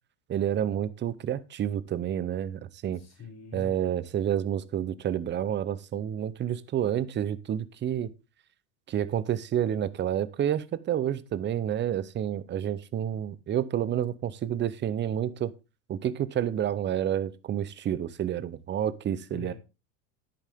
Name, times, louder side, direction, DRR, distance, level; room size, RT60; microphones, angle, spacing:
voice 1, 0.3-3.0 3.5-8.1 8.9-15.5 15.9-19.5, right 10 dB, 25° right, 0.7 m, -29 dB
voice 2, 2.9-3.8 19.3-19.6, left 8 dB, 30° left, 6.7 m, -44 dB
10.5 x 8.8 x 3.6 m
supercardioid pair, 120°, 49 cm